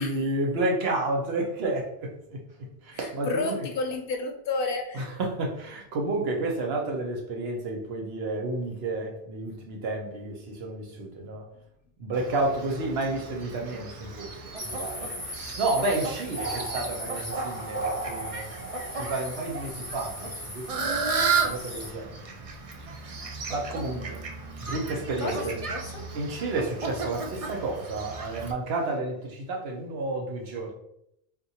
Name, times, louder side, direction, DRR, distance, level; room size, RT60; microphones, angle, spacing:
voice 1, 0.0-2.4 2.8-3.6 4.9-11.5 12.0-18.5 19.0-22.3 23.5-24.2 24.6-25.5 26.1-30.7, right 2 dB, 70° right, 1 dB, 0.9 m, -31 dB
voice 2, 2.9-5.1 25.2-26.1, left 3 dB, 65° left, 3 dB, 0.7 m, -31 dB
Fowl, 12.1-28.5, right 4 dB, 50° right, 0.4 m, -34 dB
sound 1, 14.6-21.9, equal, 20° left, 0.3 m, -37 dB
3.7 x 2.5 x 2.7 m, 0.76 s
omnidirectional pair, 1.1 m